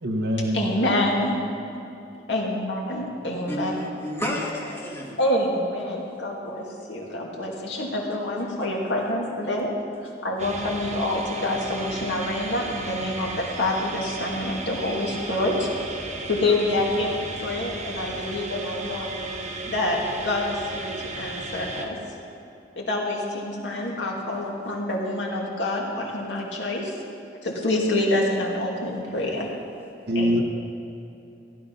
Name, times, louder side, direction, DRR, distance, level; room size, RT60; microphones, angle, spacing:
voice 1, 0.0-0.7 30.1-30.4, equal, 65° right, 1.3 m, -23 dB
voice 2, 0.5-1.4 2.3-3.7 5.2-9.7 10.2-15.7 16.3-17.1 17.4-19.2 19.7-20.0 20.2-22.0 22.8-26.9 27.4-29.5 30.1-30.4, left 1 dB, 75° left, 2.5 m, -27 dB
voice 3, 3.5-5.2 9.0-9.1 19.3-19.4 29.0-29.1, left 1 dB, 15° left, 2.0 m, -31 dB
sound 1, 10.4-21.9, right 3 dB, 40° right, 1.2 m, -35 dB
15.5 x 12.0 x 5.4 m
head